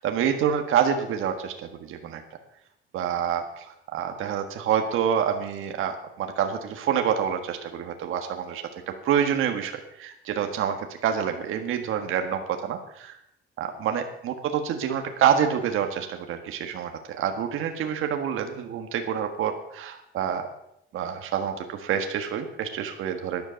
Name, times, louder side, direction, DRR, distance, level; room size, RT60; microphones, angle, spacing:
voice 1, 0.0-2.2 2.9-8.6 9.0-13.2 13.6-20.5 20.9-23.4, right 8 dB, 75° right, 5 dB, 1.6 m, -27 dB
12.5 x 10.5 x 6.9 m, 0.78 s
cardioid pair, 150°, 21 cm